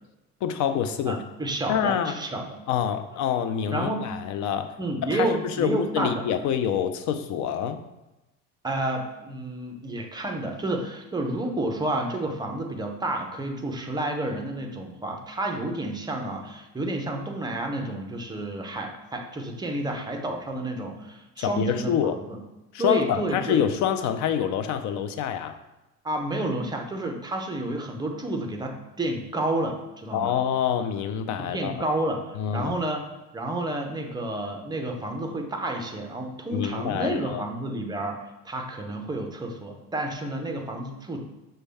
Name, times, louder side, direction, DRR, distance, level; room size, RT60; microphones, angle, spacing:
voice 1, 0.4-1.2 1.7-2.1 2.7-4.8 5.0-7.8 21.4-22.2 22.7-25.6 30.1-31.8 32.4-32.7 36.5-37.4, left 8 dB, 50° left, 9 dB, 0.5 m, -26 dB
voice 2, 1.1-2.6 3.7-4.1 4.8-6.2 8.6-22.4 22.8-23.6 26.0-30.3 31.4-33.1 33.3-41.2, right 1 dB, 10° right, 2 dB, 0.5 m, -30 dB
6.2 x 2.2 x 3.4 m, 0.98 s
supercardioid pair, 115°, 37 cm